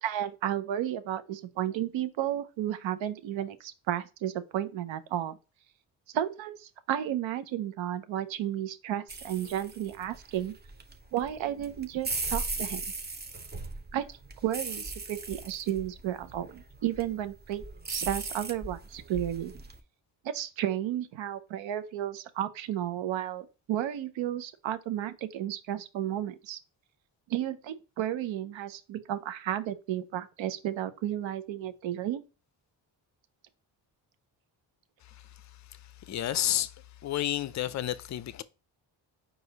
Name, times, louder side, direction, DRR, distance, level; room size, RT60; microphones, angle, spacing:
voice 1, 0.0-5.4 6.1-10.5 11.1-12.8 13.9-19.5 20.2-26.6 27.3-32.2, right 11 dB, 75° right, 0.7 m, -33 dB
sound 1, 9.1-19.8, right 3 dB, 20° right, 0.7 m, -39 dB
voice 2, 36.1-36.7 37.0-38.4, left 12 dB, 40° left, 0.4 m, -30 dB
4.8 x 2.5 x 3.9 m
cardioid pair, 65°, 47 cm